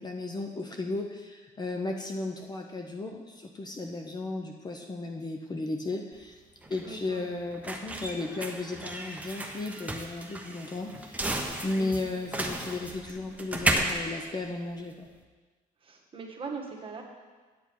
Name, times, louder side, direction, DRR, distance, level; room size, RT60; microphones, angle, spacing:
voice 1, 0.0-6.3 6.7-11.4 11.6-15.1, left 2 dB, 25° left, 3 dB, 0.7 m, -35 dB
sound 1, 6.1-15.2, right 1 dB, 10° right, 0.9 m, -34 dB
voice 2, 6.8-7.3 11.7-12.1 15.8-17.0, right 4 dB, 30° right, -1 dB, 1.5 m, -41 dB
8.3 x 8.0 x 4.7 m, 1.4 s
cardioid pair, 110°, 17 cm